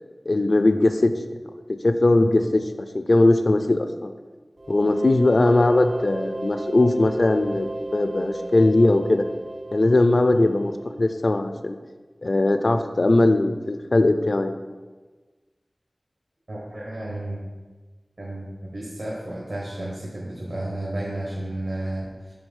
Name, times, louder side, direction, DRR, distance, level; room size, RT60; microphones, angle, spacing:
voice 1, 0.3-1.1 1.8-2.6 2.9-4.1 4.7-9.3 9.7-10.7 11.0-11.8 12.2-14.5, left 2 dB, 60° left, 8 dB, 0.4 m, -19 dB
sound 1, 4.6-11.2, right 1 dB, 50° right, 0.5 m, -34 dB
voice 2, 16.5-17.4 18.2-22.3, right 1 dB, 70° right, -5 dB, 1.3 m, -32 dB
6.0 x 3.6 x 5.5 m, 1.3 s
wide cardioid pair, 60°, 0 cm